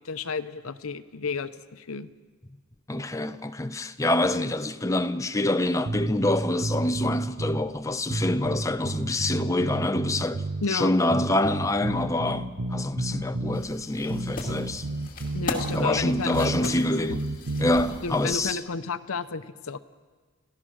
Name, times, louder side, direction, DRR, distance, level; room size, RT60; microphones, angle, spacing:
voice 1, 0.0-2.1 10.6-10.9 15.3-16.7 18.0-19.8, left 4 dB, 75° left, 0.8 m, -32 dB
voice 2, 2.9-14.9 15.7-17.3 17.6-18.6, left 1 dB, 15° left, 0.6 m, -26 dB
sound 1, 5.8-7.7 8.1-10.7 11.1-13.7 14.1-16.7 17.1-17.8, right 2 dB, 85° right, 1.0 m, -31 dB
sound 2, 13.5-18.5, left 2 dB, 40° left, 2.4 m, -38 dB
29.5 x 15.0 x 6.3 m
head